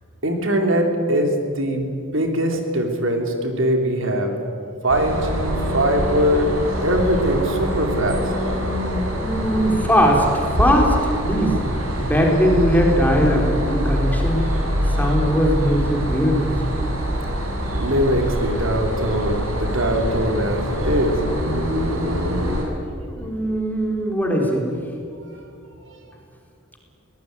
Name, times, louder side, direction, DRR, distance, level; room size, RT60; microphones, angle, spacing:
voice 1, 0.2-1.9 2.1-4.3 4.8-8.2 17.7-21.2 25.8-26.0, equal, 65° right, 4 dB, 3.2 m, -21 dB
sound 1, 4.9-22.6, equal, 85° right, 5.6 m, -24 dB
voice 2, 9.2-11.0 11.2-11.6 12.0-14.5 14.9-16.6 23.1-24.7, equal, 10° left, 0 dB, 3.9 m, -20 dB
23.0 x 18.5 x 9.5 m, 2.5 s
head